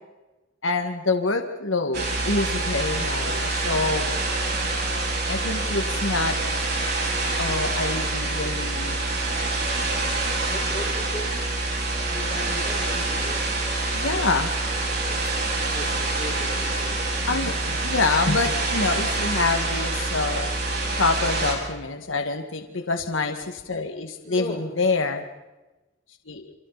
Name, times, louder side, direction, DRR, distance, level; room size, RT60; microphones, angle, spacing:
voice 1, 0.6-4.1 5.3-6.4 7.4-9.0 13.9-14.5 17.3-20.5 21.0-25.3 26.3-26.5, left 3 dB, 80° left, 5 dB, 1.9 m, -26 dB
sound 1, 1.9-21.5, right 2 dB, 55° right, 7.5 m, -26 dB
voice 2, 10.4-11.4 12.1-13.9 15.1-15.2 15.6-17.3 24.2-24.7, left 1 dB, 25° left, -1 dB, 5.7 m, -38 dB
29.5 x 28.0 x 4.2 m, 1.1 s
head